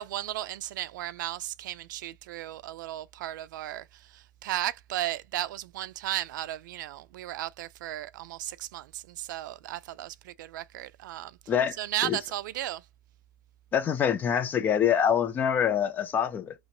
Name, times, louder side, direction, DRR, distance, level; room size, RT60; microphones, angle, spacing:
voice 1, 0.0-11.4 11.8-12.9, right 14 dB, 70° right, 0.4 m, -35 dB
voice 2, 13.7-16.5, left 8 dB, 20° left, 0.3 m, -25 dB
3.0 x 2.6 x 2.9 m
supercardioid pair, 155°, 10 cm